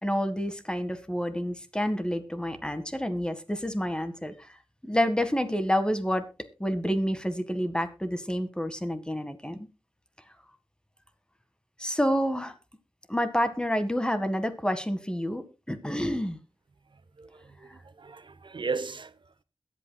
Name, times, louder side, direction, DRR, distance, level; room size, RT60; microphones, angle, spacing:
voice 1, 0.0-4.3 4.8-6.3 6.6-9.6 11.8-12.5 13.1-16.4, equal, 10° left, 1.7 m, -28 dB
voice 2, 16.9-19.4, right 4 dB, 60° right, 0.9 m, -37 dB
21.5 x 8.3 x 2.3 m
cardioid pair, 55°, 9 cm